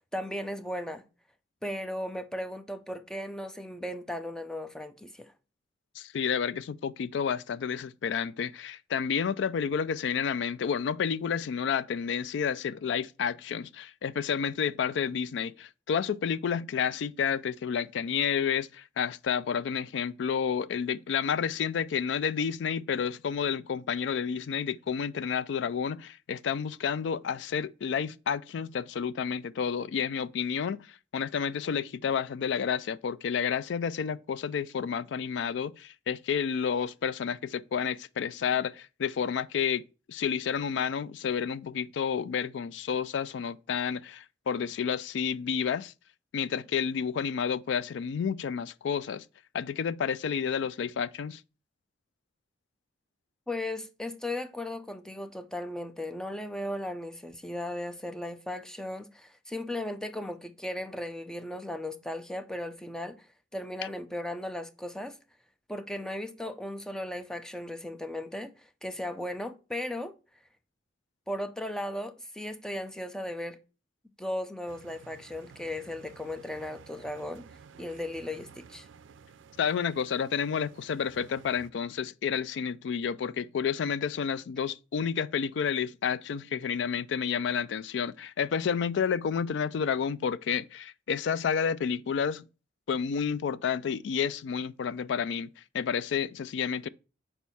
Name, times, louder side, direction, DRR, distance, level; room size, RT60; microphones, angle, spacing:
voice 1, 0.1-1.0 1.6-5.3 53.5-63.3 63.5-65.2 65.7-70.1 71.3-73.6 74.2-77.5 77.8-78.9, left 1 dB, 5° left, 0.5 m, -36 dB
voice 2, 6.0-30.9 31.1-39.8 40.1-45.9 46.3-49.3 49.5-51.4 79.6-92.5 92.9-95.5 95.7-96.9, left 7 dB, 65° left, 0.3 m, -30 dB
sound 1, 74.7-81.7, right 6 dB, 75° right, 0.4 m, -53 dB
6.3 x 4.5 x 4.1 m
head